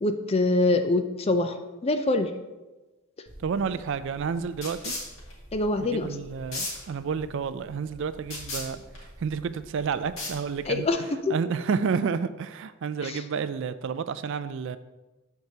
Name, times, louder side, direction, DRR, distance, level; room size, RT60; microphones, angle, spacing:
voice 1, 0.0-2.3 5.5-6.1 10.7-11.3 13.0-13.2, left 2 dB, 25° left, 8 dB, 0.4 m, -25 dB
sound 1, 3.3-10.9, left 2 dB, 65° left, 2.2 m, -39 dB
voice 2, 3.4-4.9 5.8-8.8 9.2-14.8, right 6 dB, 55° right, 13 dB, 0.3 m, -30 dB
13.0 x 4.7 x 2.8 m, 1.1 s
head